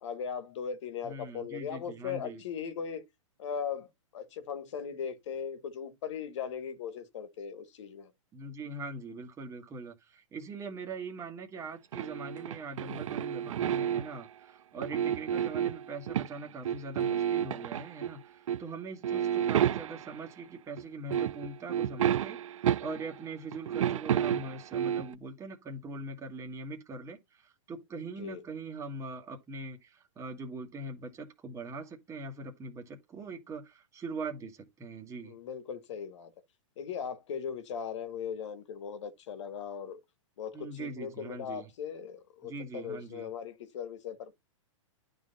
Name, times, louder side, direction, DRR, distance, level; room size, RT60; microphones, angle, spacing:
voice 1, 0.0-3.0 3.4-3.9 4.1-8.1 19.1-19.5 28.2-28.4 35.2-36.3 36.8-40.0 40.4-44.3, left 7 dB, 60° left, 1.6 m, -38 dB
voice 2, 1.0-2.4 8.3-35.4 40.5-41.7 42.4-43.3, right 3 dB, 15° right, 1.5 m, -42 dB
sound 1, 11.9-14.3 14.8-16.4 16.7-18.1 18.5-18.7 19.0-20.2 20.8-20.9 21.1-23.2 23.5-25.1, right 10 dB, 75° right, 0.4 m, -31 dB
11.0 x 3.8 x 4.0 m
hypercardioid pair, 130°, 17 cm